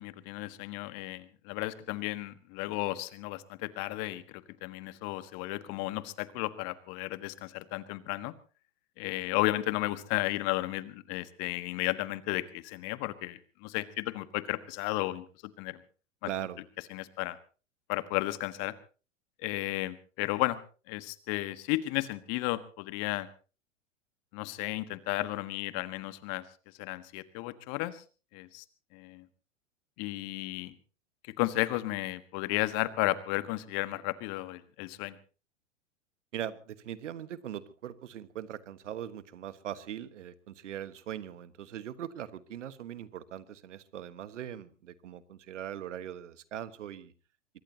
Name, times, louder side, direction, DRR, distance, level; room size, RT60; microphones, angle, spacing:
voice 1, 0.0-8.3 9.0-15.8 16.9-17.4 17.9-18.7 19.4-20.6 20.9-23.3 24.3-26.4 26.8-28.0 28.3-28.6 28.9-29.3 30.0-30.7 31.4-35.2, left 19 dB, 45° left, 14 dB, 1.5 m, -33 dB
voice 2, 16.3-16.6 36.3-47.1, right 10 dB, 70° right, 15 dB, 1.5 m, -40 dB
23.5 x 20.5 x 2.9 m, 0.36 s
hypercardioid pair, 105°, 38 cm